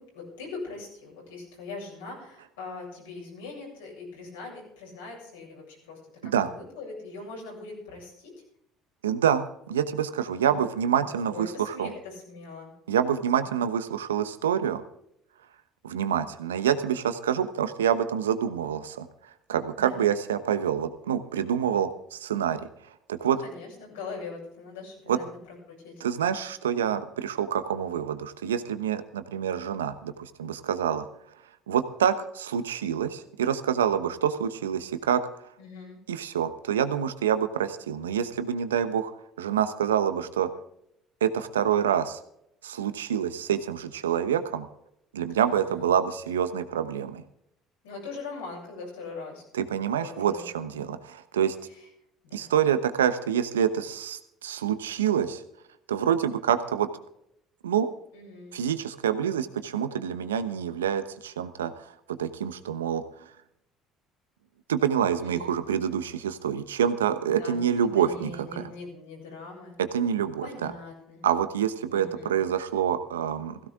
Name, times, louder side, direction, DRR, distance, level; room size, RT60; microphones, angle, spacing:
voice 1, 0.0-8.3 10.4-12.7 19.8-20.0 23.2-25.2 25.7-25.9 35.6-36.0 45.4-45.9 47.8-49.4 50.0-50.9 51.7-51.8 52.2-52.6 58.1-58.6 65.2-65.6 67.2-67.6 67.9-69.7 70.4-71.3 71.9-72.3, left 4 dB, 80° left, -2 dB, 7.5 m, -42 dB
voice 2, 9.0-11.9 12.9-14.8 15.8-19.1 19.5-22.6 23.1-23.4 25.1-25.2 26.0-31.1 31.7-35.2 36.1-39.1 39.4-40.5 41.2-42.2 42.6-44.7 45.1-47.2 49.5-51.5 52.3-55.4 55.9-56.9 57.6-57.9 58.5-61.7 62.1-63.0 64.7-68.3 68.6-68.7 69.8-70.7 71.2-73.6, right 9 dB, 85° right, 11 dB, 1.0 m, -27 dB
16.5 x 16.0 x 3.7 m, 0.75 s
hypercardioid pair, 60°, 0 cm